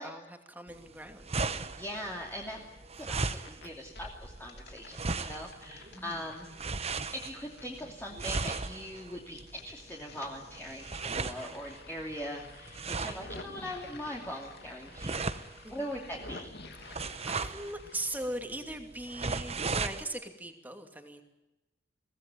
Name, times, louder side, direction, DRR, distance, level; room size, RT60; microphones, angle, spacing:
voice 1, 0.0-1.6 3.6-3.7 5.9-6.2 15.6-15.9 16.8-21.2, right 1 dB, 10° right, 5 dB, 2.5 m, -40 dB
sound 1, 0.7-20.0, right 3 dB, 35° right, 1.1 m, -38 dB
voice 2, 1.8-2.6 3.0-16.5, equal, 10° left, -2 dB, 2.8 m, -41 dB
sound 2, 3.0-3.7 4.0-9.0 9.3-18.3, left 3 dB, 60° left, 2.7 m, -51 dB
23.0 x 17.5 x 9.2 m, 0.98 s
head